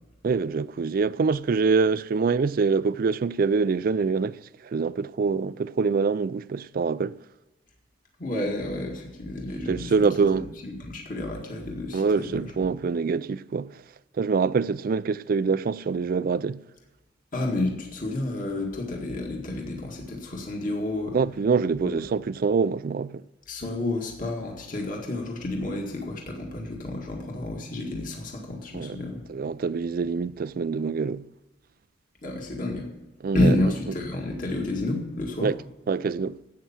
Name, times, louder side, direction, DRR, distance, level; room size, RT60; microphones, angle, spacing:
voice 1, 0.2-7.2 9.7-10.5 11.9-13.8 14.2-16.7 21.1-23.2 28.7-29.0 29.3-31.3 33.2-33.5 35.4-35.6 35.9-36.4, right 5 dB, 45° right, 0.3 m, -25 dB
voice 2, 8.2-9.9 10.3-12.7 17.3-21.2 21.8-21.9 23.5-29.2 32.2-32.9 33.3-35.5, left 1 dB, 45° left, 2.0 m, -30 dB
11.5 x 8.5 x 7.2 m
head